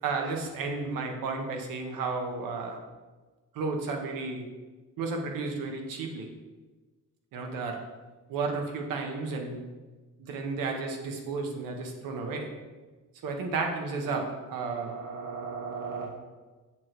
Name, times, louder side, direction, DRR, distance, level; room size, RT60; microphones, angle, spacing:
voice 1, 0.0-2.8 3.5-4.5 5.0-6.3 7.3-7.8 8.3-9.6 10.2-12.5 13.2-14.9, right 4 dB, 85° right, 3 dB, 1.2 m, -32 dB
voice 2, 14.7-16.1, right 5 dB, 70° right, 1 dB, 0.8 m, -37 dB
7.4 x 6.0 x 3.3 m, 1.3 s
cardioid pair, 175°, 33 cm